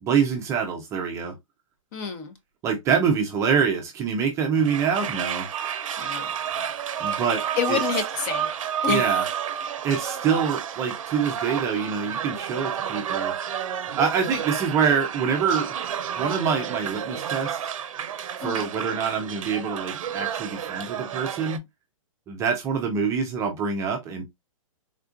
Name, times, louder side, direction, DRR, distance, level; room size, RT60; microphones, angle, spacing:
voice 1, 0.0-1.3 2.6-5.5 7.0-7.4 7.7-7.8 8.9-9.2 9.8-13.3 13.9-15.8 16.2-17.7 18.4-21.6 22.3-24.2, right 6 dB, 15° right, 0.5 m, -25 dB
voice 2, 1.9-2.3 6.0-6.3 7.6-8.5 8.8-9.2 18.4-18.7, left 6 dB, 35° left, 0.8 m, -28 dB
sound 1, 4.6-21.6, right 9 dB, 70° right, 0.6 m, -30 dB
3.6 x 2.3 x 2.4 m
hypercardioid pair, 150°, 18 cm